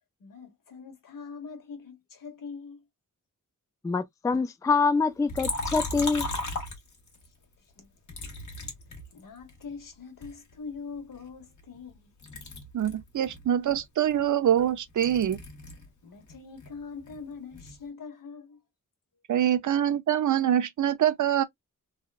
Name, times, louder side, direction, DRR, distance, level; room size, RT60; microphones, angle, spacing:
voice 1, 0.2-2.8 7.8-7.9 9.1-12.1 16.0-18.6, left 5 dB, 75° left, 1.2 m, -43 dB
voice 2, 3.8-6.3, left 4 dB, 10° left, 0.3 m, -25 dB
Liquid, 5.3-7.3 8.1-9.6 10.2-11.9 12.2-15.9 16.2-17.8, left 2 dB, 60° left, 1.3 m, -37 dB
voice 3, 12.7-15.4 19.3-21.4, right 10 dB, 65° right, 0.5 m, -24 dB
3.5 x 2.3 x 2.3 m
wide cardioid pair, 90°, 33 cm